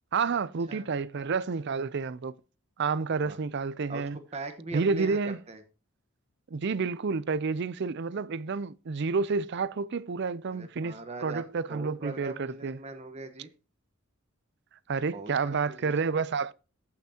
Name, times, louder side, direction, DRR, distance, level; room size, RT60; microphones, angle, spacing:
voice 1, 0.1-2.4 2.8-4.2 4.7-5.4 6.5-12.8 14.9-16.5, right 4 dB, 55° right, 0.5 m, -30 dB
voice 2, 4.3-5.6 10.5-11.4 11.7-13.5 15.1-16.0, right 3 dB, 30° right, 1.1 m, -41 dB
15.0 x 5.9 x 2.8 m
head